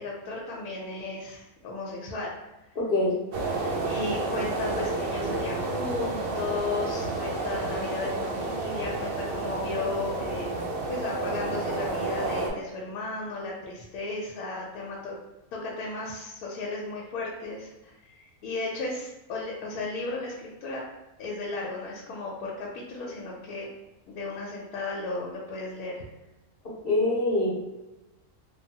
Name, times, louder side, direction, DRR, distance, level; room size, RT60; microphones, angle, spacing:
voice 1, 0.0-2.3 3.8-10.6 10.9-15.2 15.5-20.8 21.2-23.7 24.1-26.1, left 3 dB, 80° left, -2 dB, 1.1 m, -35 dB
voice 2, 2.8-3.1 26.8-27.5, left 2 dB, 45° left, -5 dB, 0.9 m, -24 dB
sound 1, 3.3-12.5, right 2 dB, 80° right, 0.5 m, -30 dB
3.1 x 2.2 x 2.7 m, 0.98 s
omnidirectional pair, 1.6 m